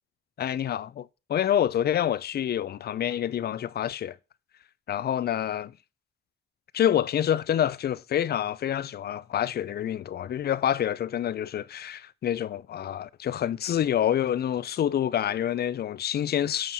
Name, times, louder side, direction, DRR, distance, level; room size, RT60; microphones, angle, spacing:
voice 1, 0.4-4.1 4.9-5.7 6.7-16.7, left 10 dB, 55° left, 0.6 m, -27 dB
9.1 x 4.5 x 6.2 m
cardioid pair, 90°, 20 cm